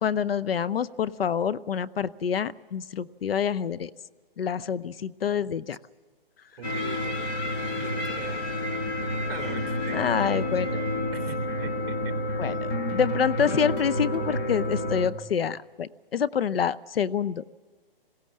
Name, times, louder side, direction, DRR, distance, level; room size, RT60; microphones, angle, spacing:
voice 1, 0.0-3.9 4.4-5.8 9.9-10.9 12.4-17.4, left 8 dB, 80° left, 17 dB, 0.8 m, -27 dB
sound 1, 6.6-15.1, left 1 dB, 25° left, 2.2 m, -29 dB
voice 2, 6.6-7.2 7.7-8.5 9.3-10.3 11.1-12.1 12.4-12.7, right 7 dB, 35° right, 5 dB, 2.6 m, -41 dB
21.5 x 17.5 x 7.4 m, 1.5 s
hypercardioid pair, 160°, 29 cm